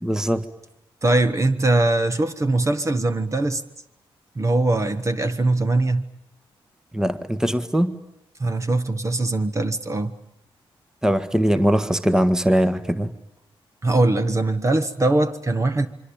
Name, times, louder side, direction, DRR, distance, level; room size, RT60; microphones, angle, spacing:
voice 1, 0.0-0.4 6.9-7.9 11.0-13.1, equal, 5° right, 1.5 m, -21 dB
voice 2, 1.0-3.6 4.3-6.0 8.4-10.1 13.8-15.9, right 2 dB, 30° right, 1.5 m, -21 dB
25.5 x 24.0 x 8.9 m
cardioid pair, 80°, 10 cm